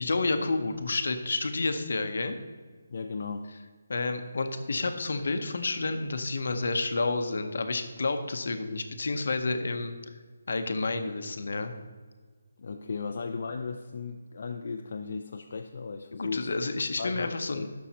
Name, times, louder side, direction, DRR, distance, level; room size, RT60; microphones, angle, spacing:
voice 1, 0.0-2.4 3.9-9.9 10.5-11.7 16.1-17.7, left 3 dB, 60° left, 8 dB, 0.8 m, -30 dB
voice 2, 2.9-3.5 12.6-16.5 17.0-17.7, left 4 dB, 45° left, 4 dB, 0.4 m, -36 dB
11.5 x 6.3 x 2.9 m, 1.5 s
hypercardioid pair, 175°, 0 cm